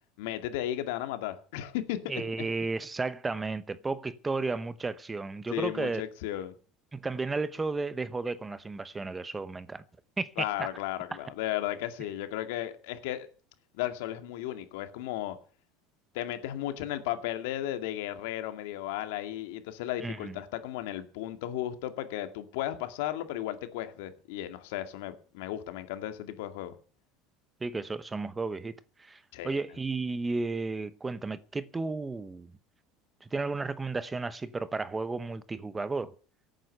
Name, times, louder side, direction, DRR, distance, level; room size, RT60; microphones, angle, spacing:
voice 1, 0.2-2.0 5.5-6.6 10.4-13.3 13.7-15.4 16.1-26.8 29.3-29.6, left 13 dB, 80° left, 2.2 m, -35 dB
voice 2, 2.1-6.0 6.9-9.8 10.2-10.7 20.0-20.4 27.6-32.5 33.2-36.1, right 3 dB, 15° right, 0.8 m, -33 dB
17.5 x 9.0 x 6.8 m
cardioid pair, 140°, 0 cm